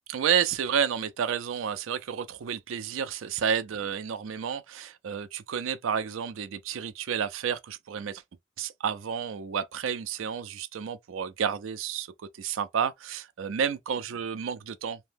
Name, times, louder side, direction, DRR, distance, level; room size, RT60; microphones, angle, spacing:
voice 1, 0.1-8.2 8.6-15.0, right 7 dB, 85° right, 0.4 m, -30 dB
2.7 x 2.1 x 3.3 m
head